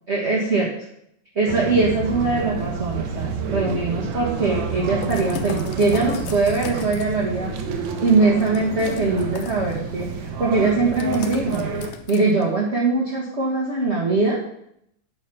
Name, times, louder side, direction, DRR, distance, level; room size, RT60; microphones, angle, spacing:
voice 1, 0.1-0.7 1.3-7.5 8.0-11.7 12.1-14.4, right 3 dB, 35° right, -4 dB, 1.1 m, -21 dB
sound 1, 1.5-11.9, right 5 dB, 75° right, 2.3 m, -29 dB
sound 2, 5.0-7.2 8.4-9.7 10.9-12.4, left 8 dB, 85° left, 2.3 m, -37 dB
9.3 x 5.2 x 6.8 m, 0.73 s
omnidirectional pair, 3.4 m